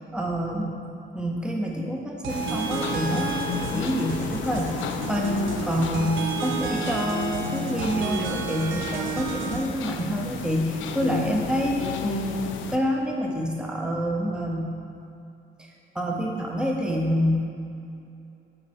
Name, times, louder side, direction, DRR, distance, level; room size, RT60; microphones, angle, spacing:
voice 1, 0.1-0.8 1.1-4.8 5.1-14.7 15.6-15.7 15.9-17.4, equal, 5° right, -1 dB, 0.6 m, -27 dB
sound 1, 2.2-9.6, right 6 dB, 85° right, 0.6 m, -32 dB
sound 2, 2.3-12.8, left 7 dB, 85° left, 0.5 m, -33 dB
7.8 x 4.4 x 4.2 m, 2.7 s
cardioid pair, 140°, 19 cm